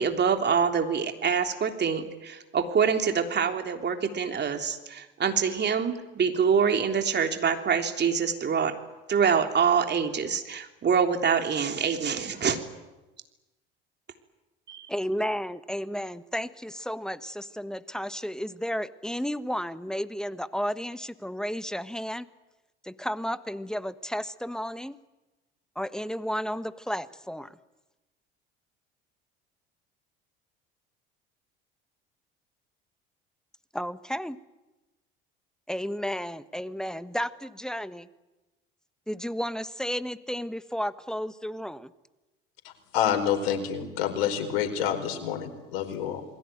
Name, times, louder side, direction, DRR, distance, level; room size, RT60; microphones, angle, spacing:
voice 1, 0.0-8.7 9.1-12.6 14.7-14.9, right 6 dB, 35° right, 5 dB, 3.4 m, -25 dB
voice 2, 14.9-22.3 22.8-25.0 25.8-27.5 33.7-34.4 35.7-38.1 39.1-41.9, equal, ahead, 14 dB, 1.3 m, -32 dB
voice 3, 42.6-46.2, left 9 dB, 70° left, 7 dB, 4.8 m, -28 dB
28.0 x 21.5 x 9.2 m, 1.1 s
hypercardioid pair, 65°, 29 cm